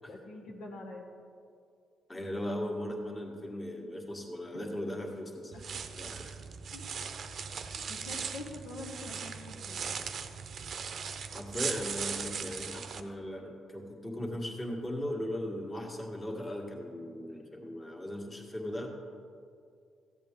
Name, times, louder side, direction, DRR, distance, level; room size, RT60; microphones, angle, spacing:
voice 1, 0.1-1.1 4.5-4.6 5.5-5.6 6.7-6.8 7.9-9.8, left 2 dB, 75° left, 0 dB, 1.4 m, -45 dB
voice 2, 2.1-5.5 5.9-6.4 11.3-18.9, left 1 dB, 25° left, 0 dB, 1.8 m, -38 dB
sound 1, 5.5-13.0, right 6 dB, 55° right, 0.6 m, -39 dB
14.0 x 8.2 x 3.7 m, 2.4 s
cardioid pair, 90°, 0 cm